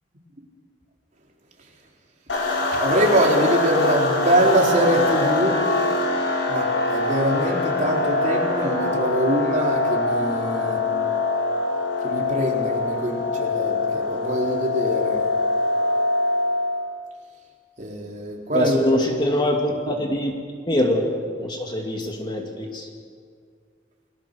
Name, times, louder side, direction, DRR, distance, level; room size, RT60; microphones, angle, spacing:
sound 1, 2.3-16.8, left 2 dB, 85° left, 5.0 m, -23 dB
voice 1, 2.7-5.6 6.5-10.8 12.0-15.2 17.8-19.0 19.8-19.9, right 1 dB, 40° right, -1 dB, 3.9 m, -23 dB
voice 2, 18.5-20.3 20.7-21.1 21.4-22.9, left 1 dB, 25° left, 2 dB, 2.3 m, -23 dB
30.0 x 20.0 x 6.7 m, 2.1 s
head